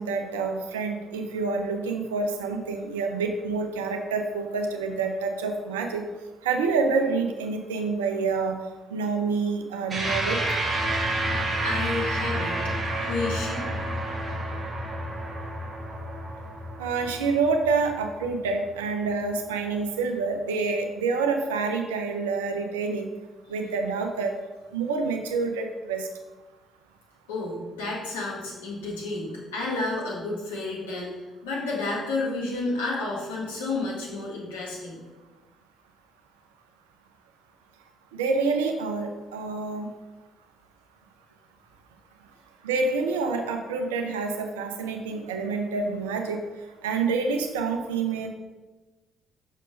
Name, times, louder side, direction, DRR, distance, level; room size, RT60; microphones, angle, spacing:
voice 1, 0.0-6.0 6.4-8.6 8.9-10.4 16.8-23.1 23.5-24.3 24.7-26.1 38.1-39.9 42.6-46.4 46.8-48.3, right 4 dB, 80° right, 4 dB, 0.6 m, -27 dB
sound 1, 9.9-18.6, right 1 dB, 35° right, 1.6 m, -30 dB
voice 2, 11.6-13.6 27.3-31.1 31.4-35.0, left 2 dB, 80° left, -4 dB, 1.6 m, -31 dB
6.1 x 4.5 x 5.1 m, 1.2 s
figure-of-eight pair, 45°, 0 cm